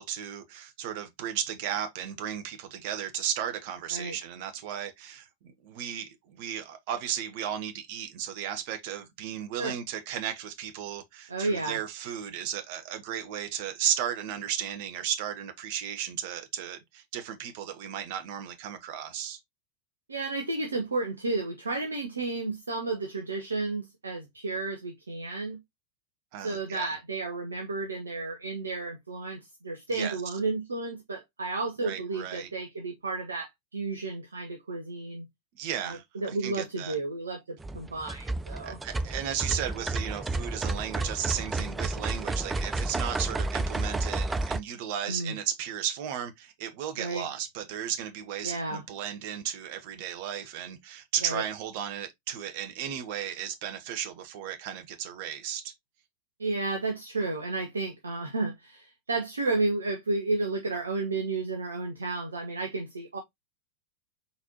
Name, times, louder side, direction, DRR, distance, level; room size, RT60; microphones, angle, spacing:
voice 1, 0.0-19.4 26.3-26.9 29.9-30.2 31.8-32.5 35.6-37.0 38.6-55.7, right 10 dB, 50° right, 0.9 m, -35 dB
voice 2, 11.3-11.8 20.1-25.6 26.4-35.3 35.8-38.8 45.1-45.4 47.0-47.3 48.4-48.8 51.2-51.4 56.4-63.2, right 3 dB, 75° right, 0.8 m, -32 dB
sound 1, 37.6-44.6, right 2 dB, 10° right, 0.4 m, -31 dB
4.2 x 4.1 x 2.8 m
figure-of-eight pair, 90°, 0 cm